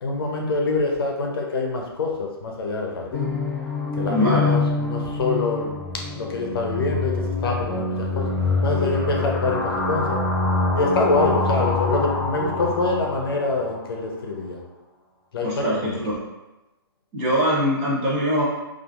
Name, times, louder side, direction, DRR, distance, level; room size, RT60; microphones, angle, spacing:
voice 1, 0.0-3.3 4.0-5.7 6.2-8.2 8.6-10.2 10.7-14.6 15.3-16.0, left 3 dB, 65° left, 0 dB, 0.6 m, -25 dB
sound 1, 3.1-13.9, left 3 dB, 15° left, 0.5 m, -25 dB
voice 2, 4.1-4.5 15.4-16.2 17.1-18.4, equal, 25° right, -6 dB, 0.7 m, -22 dB
2.8 x 2.4 x 2.4 m, 1.0 s
hypercardioid pair, 155°, 13 cm